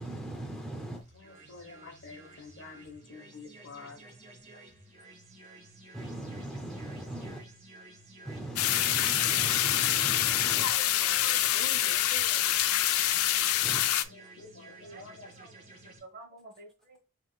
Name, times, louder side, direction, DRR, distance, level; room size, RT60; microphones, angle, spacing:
voice 1, 0.0-1.0 5.9-7.5 8.2-10.7 13.6-13.9, right 1 dB, 5° left, 0.4 m, -39 dB
sound 1, 1.0-16.0, right 2 dB, 30° right, 1.6 m, -53 dB
voice 2, 1.1-4.0 10.4-12.5 14.1-15.3, left 4 dB, 55° left, 1.0 m, -45 dB
sound 2, 8.6-14.0, left 12 dB, 75° left, 0.4 m, -26 dB
voice 3, 14.8-17.0, right 2 dB, 45° right, 1.1 m, -51 dB
6.0 x 2.9 x 2.2 m
head